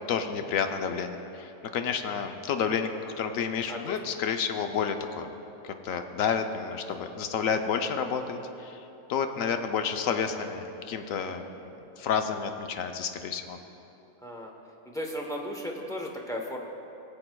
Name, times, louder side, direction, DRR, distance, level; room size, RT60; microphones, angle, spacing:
voice 1, 0.0-2.9 3.2-5.3 5.6-8.8 9.1-11.4 12.0-13.6, left 6 dB, 75° left, 6 dB, 1.0 m, -30 dB
voice 2, 14.8-16.6, equal, 5° left, 0 dB, 0.6 m, -35 dB
19.5 x 7.7 x 2.3 m, 2.9 s
omnidirectional pair, 1.4 m